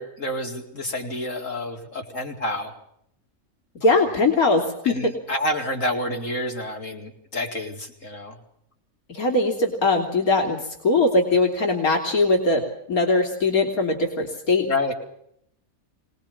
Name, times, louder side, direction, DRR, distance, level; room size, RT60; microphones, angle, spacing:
voice 1, 0.0-2.7 4.8-8.4 14.7-14.9, left 1 dB, 60° left, 2 dB, 4.7 m, -29 dB
voice 2, 3.8-5.1 9.1-10.6 10.8-12.6 12.9-14.7, left 2 dB, 85° left, 2 dB, 3.6 m, -21 dB
25.5 x 20.0 x 7.2 m, 0.71 s
omnidirectional pair, 1.5 m